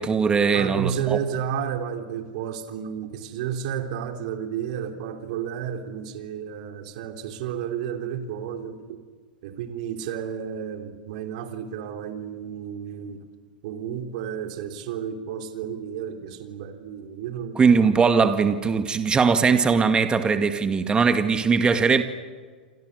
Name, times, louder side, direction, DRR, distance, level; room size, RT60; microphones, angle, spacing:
voice 1, 0.0-1.2 17.6-22.0, right 5 dB, 20° right, 2.0 m, -20 dB
voice 2, 0.5-9.0 9.4-13.3 13.6-17.7, right 8 dB, 55° right, 3.4 m, -32 dB
29.0 x 27.0 x 6.7 m
figure-of-eight pair, 95°, 5 cm